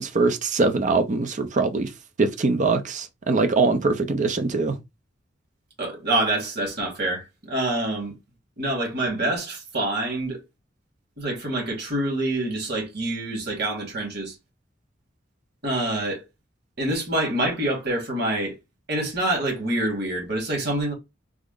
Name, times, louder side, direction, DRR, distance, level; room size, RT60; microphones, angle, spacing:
voice 1, 0.0-1.9 2.2-4.8, right 3 dB, 40° right, 0.5 m, -22 dB
voice 2, 5.8-8.1 8.6-10.4 11.2-14.3 15.6-16.2 16.8-18.5 18.9-20.9, right 1 dB, 60° right, 1.7 m, -26 dB
3.6 x 2.0 x 3.7 m
head